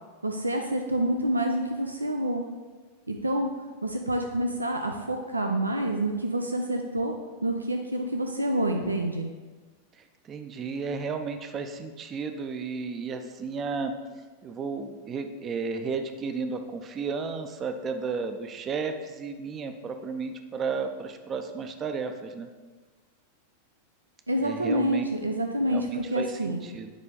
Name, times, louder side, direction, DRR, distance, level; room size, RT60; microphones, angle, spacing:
voice 1, 0.2-2.4 3.1-3.5 3.8-7.1 7.4-9.3 24.3-26.6, right 1 dB, 80° right, 3 dB, 0.4 m, -27 dB
voice 2, 10.3-13.9 14.4-22.5 24.4-25.0 25.7-26.9, right 5 dB, 25° right, 7 dB, 0.5 m, -33 dB
8.8 x 3.2 x 3.8 m, 1.3 s
figure-of-eight pair, 90°, 0 cm